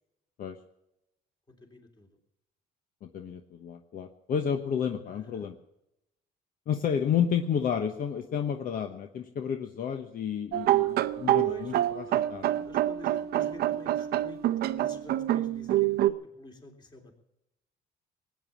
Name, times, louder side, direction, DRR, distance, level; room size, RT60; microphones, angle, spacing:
voice 1, 1.5-2.1 5.1-5.5 6.7-6.8 11.4-11.7 12.1-17.1, left 1 dB, 25° left, 3 dB, 3.4 m, -48 dB
voice 2, 3.0-5.5 6.7-12.0 12.3-12.7, left 8 dB, 55° left, 6 dB, 1.1 m, -31 dB
sound 1, 10.5-16.1, right 13 dB, 70° right, 0.7 m, -26 dB
19.0 x 9.5 x 7.2 m, 0.86 s
cardioid pair, 110°, 17 cm